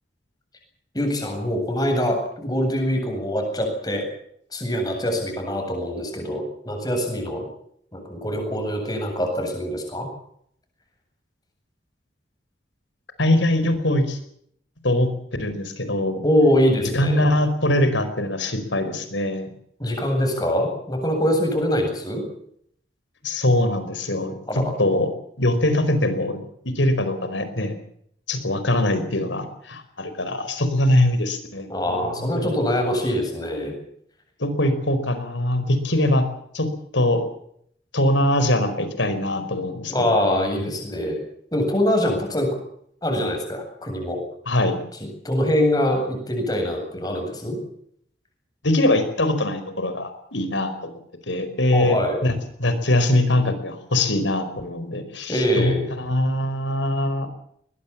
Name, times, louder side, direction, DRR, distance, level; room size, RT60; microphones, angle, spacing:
voice 1, 0.9-4.0 4.5-7.5 7.9-10.1 16.2-17.3 19.8-22.2 24.5-24.7 31.7-33.7 39.9-41.2 41.5-42.5 43.0-44.2 45.2-47.6 51.7-52.2 55.3-55.9, equal, 20° left, 3 dB, 8.0 m, -23 dB
voice 2, 13.2-14.2 14.8-15.1 15.4-16.2 16.9-19.5 23.2-25.1 25.4-27.8 28.3-32.5 34.4-36.3 36.5-36.7 36.9-37.2 37.9-40.7 44.5-44.8 48.6-50.9 51.3-52.3 52.6-57.3, left 1 dB, 85° left, 10 dB, 4.9 m, -22 dB
21.5 x 21.0 x 7.4 m, 0.68 s
head